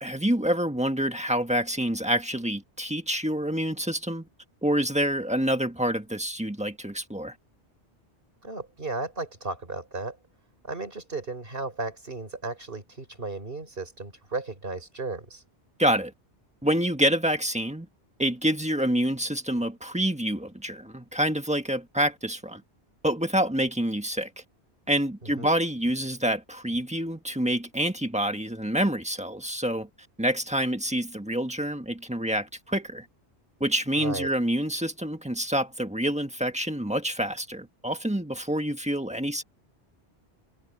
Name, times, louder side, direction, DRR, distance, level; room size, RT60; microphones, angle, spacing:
voice 1, 0.0-4.3 4.6-7.3 15.8-16.1 16.6-17.9 18.2-22.6 23.0-24.3 24.9-29.9 30.2-33.0 33.6-39.4, equal, 5° right, 1.5 m, -27 dB
voice 2, 8.4-10.2 10.6-15.4 25.4-25.5 34.0-34.3, right 3 dB, 50° right, 4.2 m, -35 dB
omnidirectional pair, 1.2 m